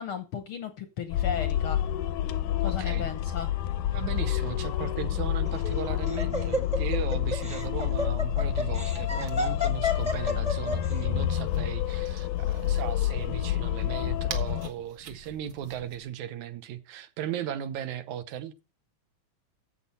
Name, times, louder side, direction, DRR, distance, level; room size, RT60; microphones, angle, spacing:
voice 1, 0.0-1.8 2.6-3.5, left 7 dB, 65° left, 1.3 m, -35 dB
sound 1, 1.1-14.7, left 12 dB, 85° left, 2.2 m, -29 dB
voice 2, 2.6-3.1 3.9-18.6, right 10 dB, 80° right, 2.3 m, -37 dB
Laughter, 5.5-10.9, left 2 dB, 5° right, 0.6 m, -31 dB
sound 2, 7.6-16.1, right 4 dB, 50° right, 1.8 m, -47 dB
14.0 x 7.4 x 4.2 m
omnidirectional pair, 3.4 m